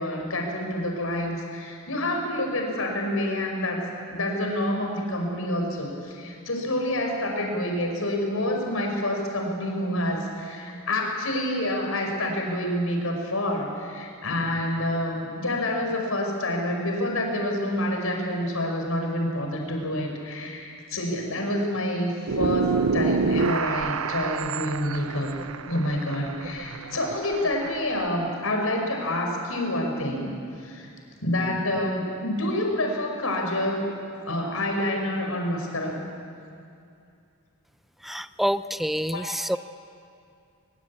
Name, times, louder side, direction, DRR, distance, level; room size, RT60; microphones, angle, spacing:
voice 1, 0.0-25.3 25.6-30.9 31.2-33.9 34.2-36.0 39.1-39.2, left 1 dB, 75° left, 1 dB, 5.4 m, -28 dB
sound 1, 22.3-28.1, right 5 dB, 75° right, 0.7 m, -28 dB
voice 2, 38.0-39.6, equal, ahead, 12 dB, 0.6 m, -27 dB
23.0 x 22.0 x 8.6 m, 2.5 s
head